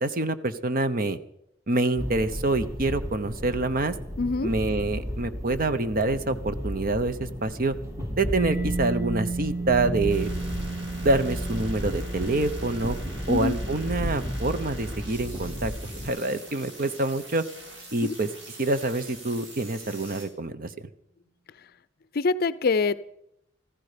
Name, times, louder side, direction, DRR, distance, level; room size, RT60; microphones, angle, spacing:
voice 1, 0.0-1.2 1.7-3.9 4.4-7.7 8.2-10.3 11.0-13.0 13.3-15.7 16.0-17.4 17.9-18.3 18.6-20.7, right 2 dB, 50° right, 12 dB, 0.9 m, -26 dB
sound 1, 2.0-16.1, equal, 15° right, 2.2 m, -34 dB
voice 2, 4.2-4.5 13.3-13.5 18.0-18.1 22.1-22.9, left 4 dB, 50° left, 16 dB, 0.5 m, -24 dB
Mallet percussion, 8.3-15.8, right 3 dB, 90° right, 1.2 m, -35 dB
sound 2, 10.1-20.3, right 1 dB, 70° right, 5.1 m, -44 dB
15.0 x 14.5 x 5.1 m, 0.76 s
head